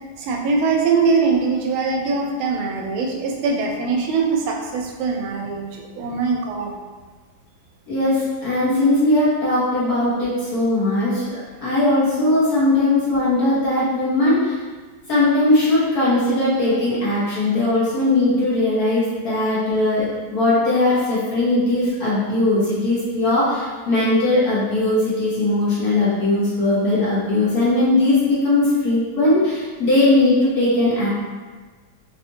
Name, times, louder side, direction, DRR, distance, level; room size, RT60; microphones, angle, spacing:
voice 1, 0.2-6.7, right 4 dB, 80° right, 0 dB, 1.4 m, -22 dB
voice 2, 7.9-14.6 15.1-31.1, left 2 dB, 55° left, -9 dB, 1.2 m, -19 dB
4.4 x 2.4 x 2.6 m, 1.4 s
omnidirectional pair, 2.2 m